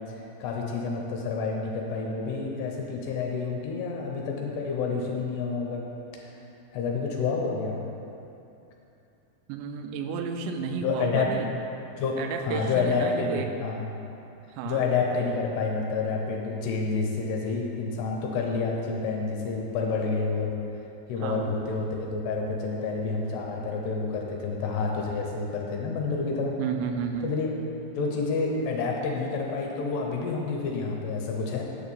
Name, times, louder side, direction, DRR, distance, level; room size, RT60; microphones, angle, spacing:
voice 1, 0.0-5.8 6.7-7.8 10.8-11.6 12.0-13.8 14.6-20.5 21.1-26.6 27.2-27.5 28.0-31.6, left 4 dB, 75° left, 0 dB, 2.8 m, -29 dB
voice 2, 9.5-11.5 12.2-13.5 14.6-14.8 21.2-21.5 26.6-27.3, right 7 dB, 85° right, 5 dB, 2.7 m, -32 dB
9.3 x 4.7 x 7.0 m, 2.8 s
omnidirectional pair, 5.2 m